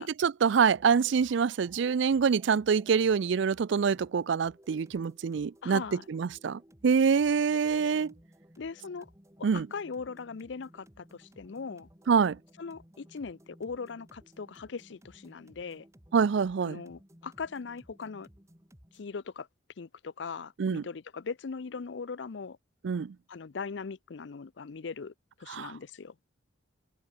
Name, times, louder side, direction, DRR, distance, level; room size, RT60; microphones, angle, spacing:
voice 1, 0.0-5.8 6.1-8.1 9.4-9.7 12.1-12.4 16.1-16.8 20.6-20.8 22.8-23.1 25.5-25.7, right 6 dB, 65° right, 0.4 m, -26 dB
sound 1, 0.7-19.1, equal, 15° right, 3.7 m, -58 dB
voice 2, 5.6-6.0 8.6-9.1 9.4-11.9 12.6-15.9 16.6-18.3 18.9-19.5 19.8-22.6 23.3-25.1 25.4-26.1, left 5 dB, 65° left, 0.5 m, -40 dB
head